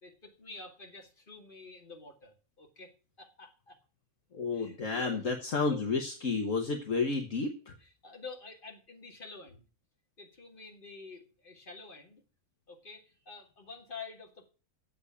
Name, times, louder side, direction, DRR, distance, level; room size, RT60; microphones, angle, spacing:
voice 1, 0.0-2.9 3.2-3.8 4.5-5.2 5.7-5.8 7.8-9.7 10.2-12.2 12.7-14.5, left 3 dB, 35° left, 1 dB, 2.4 m, -48 dB
voice 2, 4.3-7.7, left 4 dB, 60° left, 3 dB, 1.6 m, -31 dB
8.3 x 7.5 x 8.3 m, 0.37 s
omnidirectional pair, 1.6 m